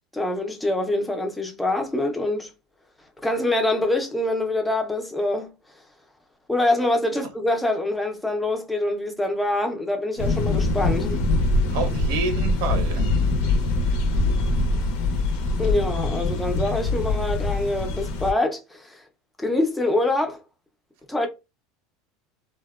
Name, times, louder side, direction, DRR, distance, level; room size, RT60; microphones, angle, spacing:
voice 1, 0.1-2.5 3.2-5.5 6.5-11.2 15.6-19.0 19.4-20.4 21.1-21.3, left 1 dB, 5° left, 0.4 m, -25 dB
sound 1, 10.2-18.3, left 2 dB, 65° left, 0.5 m, -23 dB
voice 2, 11.7-13.1, right 4 dB, 75° right, 0.6 m, -28 dB
2.7 x 2.1 x 2.3 m
supercardioid pair, 145°, 0 cm